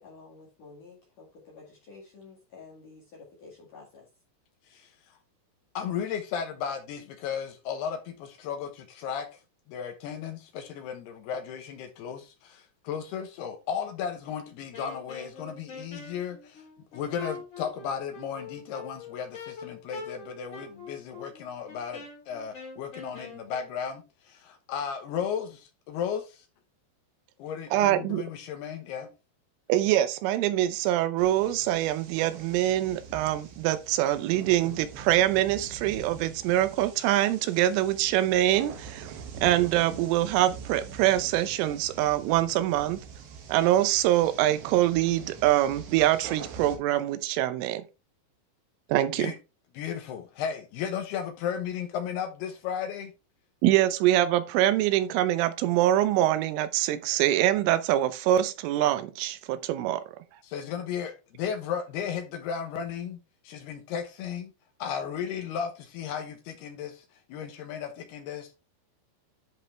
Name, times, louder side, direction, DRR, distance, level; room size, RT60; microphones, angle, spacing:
voice 1, 0.0-4.1, left 4 dB, 50° left, 2.9 m, -50 dB
voice 2, 5.7-9.3 9.7-16.6 16.9-26.5 27.4-29.1 49.2-49.4 49.7-53.1 60.4-63.2 63.4-64.5 64.8-68.5, left 7 dB, 75° left, 2.5 m, -35 dB
Wind instrument woodwind instrument, 14.7-23.7, left 4 dB, 30° left, 4.1 m, -43 dB
voice 3, 27.7-28.2 29.7-43.0 43.5-47.8 48.9-49.3 53.6-60.0, right 13 dB, 80° right, 3.2 m, -24 dB
sound 1, 31.2-46.8, right 6 dB, 65° right, 3.7 m, -44 dB
10.5 x 5.4 x 3.3 m
omnidirectional pair, 5.8 m